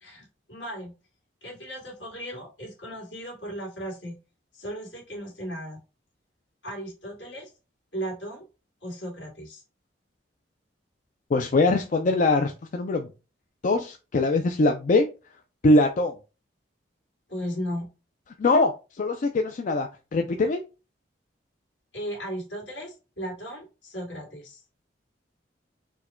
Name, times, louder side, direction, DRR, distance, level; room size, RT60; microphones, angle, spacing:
voice 1, 0.0-0.9 1.4-4.2 4.5-5.8 6.6-7.5 7.9-8.4 8.8-9.6 17.3-17.9 21.9-24.6, equal, 70° left, -1 dB, 2.1 m, -36 dB
voice 2, 11.3-13.1 13.6-15.1 15.6-16.1 18.4-18.7 19.0-20.6, left 2 dB, 45° left, 5 dB, 0.4 m, -22 dB
4.5 x 2.2 x 4.2 m, 0.30 s
head